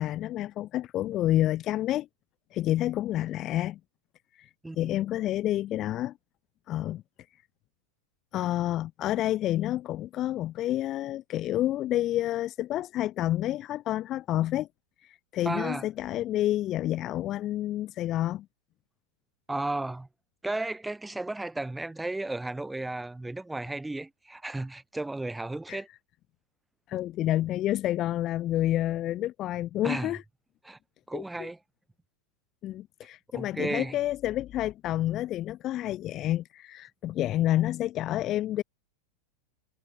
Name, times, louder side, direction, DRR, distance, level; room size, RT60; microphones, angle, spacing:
voice 1, 0.0-2.1 2.5-3.8 4.4-4.5 4.8-6.1 6.7-7.0 8.3-14.7 15.3-18.5 25.7-25.8 26.9-30.2 31.1-31.2 32.6-38.6, left 13 dB, 35° left, 0.3 m, -29 dB
voice 2, 4.6-4.9 15.4-15.9 19.5-20.1 20.4-25.9 29.8-30.1 30.6-30.8 31.1-31.6 33.3-34.0, right 2 dB, 5° right, 0.7 m, -34 dB
figure-of-eight pair, 90°, 0 cm